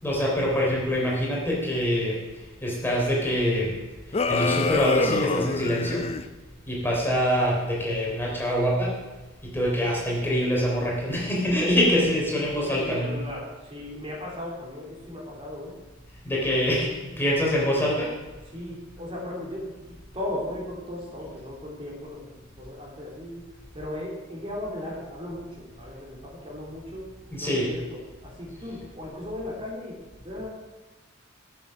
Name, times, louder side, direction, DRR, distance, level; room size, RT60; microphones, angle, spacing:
voice 1, 0.0-2.2 2.6-3.8 4.1-6.1 6.7-9.0 9.4-13.2 16.2-18.1 27.3-27.7, equal, 10° left, -3 dB, 3.4 m, -25 dB
sound 1, 4.1-6.3, left 4 dB, 30° left, 0.5 m, -26 dB
voice 2, 12.8-15.7 18.5-22.2 22.5-23.4 23.7-27.0 27.4-30.0 30.2-30.5, left 1 dB, 25° right, -3 dB, 3.5 m, -36 dB
16.5 x 7.1 x 6.3 m, 1.2 s
head